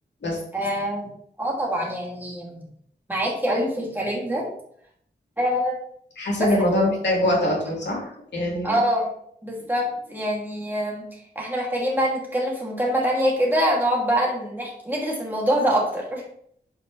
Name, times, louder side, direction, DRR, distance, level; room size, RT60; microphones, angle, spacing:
voice 1, 0.5-1.1 1.4-2.7 3.1-4.5 5.4-5.7 6.4-6.5 8.6-9.1 9.4-11.1 11.3-16.2, equal, 10° right, -4 dB, 2.6 m, -24 dB
voice 2, 6.2-8.8, left 1 dB, 80° left, -3 dB, 2.9 m, -23 dB
8.2 x 5.4 x 3.3 m, 0.65 s
wide cardioid pair, 100°, 18 cm